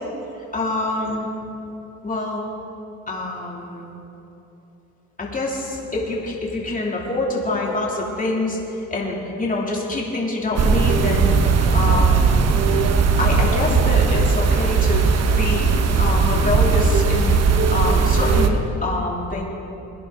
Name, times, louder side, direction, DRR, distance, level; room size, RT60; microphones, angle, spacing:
voice 1, 0.5-1.3 2.0-2.4 3.1-3.9 5.2-12.3 13.2-15.1 15.4-15.7 16.0-17.4 17.7-19.4, left 2 dB, 25° left, -3 dB, 3.1 m, -25 dB
sound 1, 10.6-18.5, right 5 dB, 55° right, 1.1 m, -18 dB
22.0 x 10.5 x 4.0 m, 2.9 s
cardioid pair, 90°, 30 cm